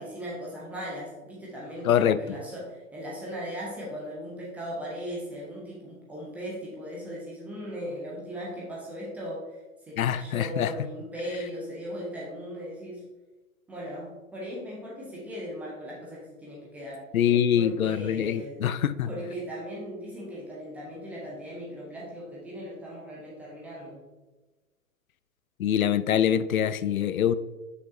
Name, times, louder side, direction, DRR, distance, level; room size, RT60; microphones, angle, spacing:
voice 1, 0.0-13.0 13.7-17.0 17.6-18.6 19.0-24.0, equal, 5° right, 0.3 m, -38 dB
voice 2, 1.8-2.2 10.0-10.7 17.1-19.1 25.6-27.3, left 9 dB, 75° left, 0.6 m, -24 dB
8.3 x 6.2 x 2.6 m
figure-of-eight pair, 115°, 42 cm